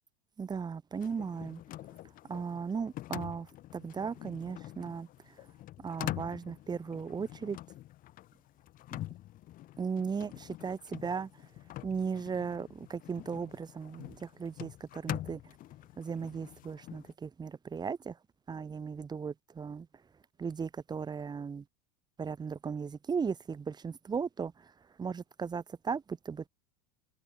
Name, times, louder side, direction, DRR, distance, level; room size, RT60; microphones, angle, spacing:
voice 1, 0.4-1.6 2.3-5.4 5.8-7.6 8.9-9.0 9.8-11.3 11.8-15.5 16.0-18.2 18.5-19.9 20.4-21.6 22.2-24.7 25.0-26.5, right 6 dB, 20° right, 5.4 m, -37 dB
sound 1, 0.9-17.1, left 15 dB, 45° left, 6.6 m, -45 dB
supercardioid pair, 115°, 20 cm